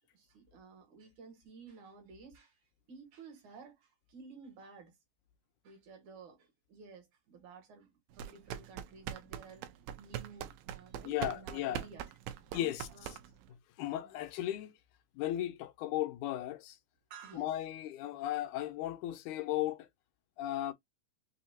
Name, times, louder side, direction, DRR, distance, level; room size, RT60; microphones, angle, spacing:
voice 1, 0.1-2.6 2.9-5.0 5.6-7.9 8.1-12.1 12.5-13.2 13.9-14.2 17.1-17.6 18.6-18.7, right 5 dB, 60° right, 2.8 m, -53 dB
sound 1, 8.1-13.5, right 11 dB, 80° right, 2.4 m, -42 dB
voice 2, 11.0-11.8 12.5-12.9 13.8-14.7 15.2-16.8 17.3-19.9 20.4-20.7, left 13 dB, 80° left, 1.8 m, -36 dB
6.4 x 2.7 x 2.8 m
omnidirectional pair, 4.2 m